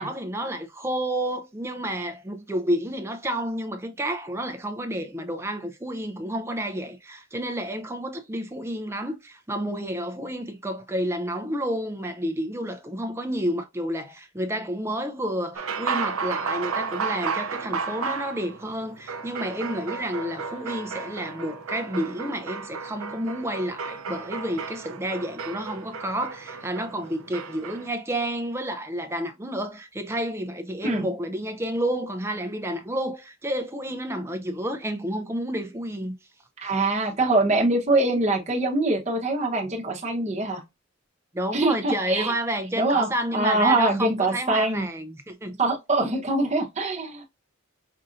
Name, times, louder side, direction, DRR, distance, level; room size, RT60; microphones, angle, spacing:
voice 1, 0.0-36.1 41.3-45.6, right 1 dB, 10° right, 0.5 m, -30 dB
sound 1, 15.6-27.9, right 5 dB, 85° right, 0.5 m, -33 dB
voice 2, 36.6-40.6 41.5-42.3 42.8-44.9 45.6-47.2, right 2 dB, 35° right, 0.9 m, -24 dB
5.4 x 2.6 x 2.5 m
head